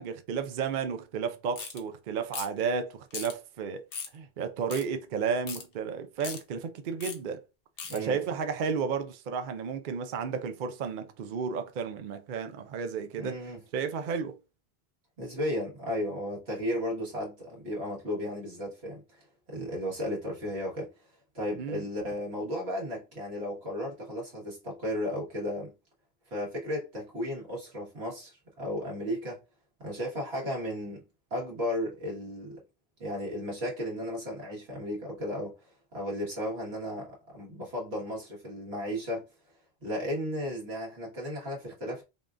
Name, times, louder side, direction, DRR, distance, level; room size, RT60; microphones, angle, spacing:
voice 1, 0.0-3.8 4.1-7.4 7.9-13.4 13.7-14.4 21.6-21.9, right 6 dB, 60° right, 0.6 m, -32 dB
sound 1, 1.6-1.8 2.3-2.6 3.1-3.3 3.9-4.2 4.7-4.8 5.5-5.6 6.2-6.4 7.0-7.2 7.8-8.0, left 5 dB, 65° left, 1.0 m, -38 dB
voice 2, 13.2-13.6 15.2-20.9 21.3-25.7 26.3-29.4 29.8-31.0 31.3-32.6 33.0-39.2 39.8-42.0, equal, 85° right, 1.8 m, -34 dB
5.3 x 2.4 x 2.5 m
omnidirectional pair, 1.0 m